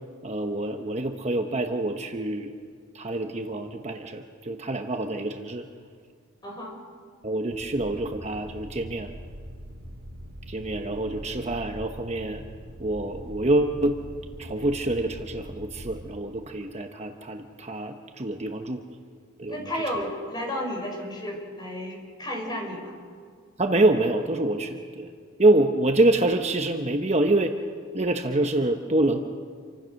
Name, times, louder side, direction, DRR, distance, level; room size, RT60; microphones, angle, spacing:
voice 1, 0.2-2.5 2.9-5.7 7.2-9.1 10.5-12.4 12.8-14.0 14.4-18.8 19.4-19.7 23.6-25.1 25.4-27.5 27.9-29.2, right 2 dB, 30° right, 5 dB, 1.0 m, -26 dB
voice 2, 6.4-6.8 19.5-22.9, left 1 dB, 20° left, 0 dB, 5.5 m, -32 dB
sound 1, 7.5-16.1, equal, 85° right, 2.4 m, -42 dB
28.0 x 24.5 x 6.5 m, 2.1 s
head